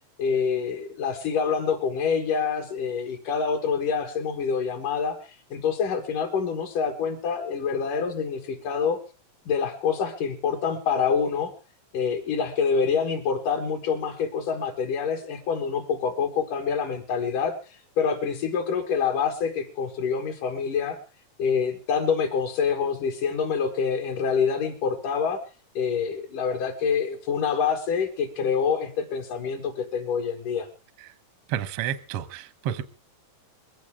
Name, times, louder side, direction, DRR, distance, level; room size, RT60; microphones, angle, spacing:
voice 1, 0.2-9.0 9.5-11.5 11.9-21.0 21.4-25.4 25.7-30.7, left 6 dB, 65° left, 1 dB, 3.0 m, -26 dB
voice 2, 31.5-32.8, right 10 dB, 75° right, 12 dB, 1.3 m, -30 dB
21.5 x 15.5 x 3.6 m, 0.35 s
omnidirectional pair, 4.2 m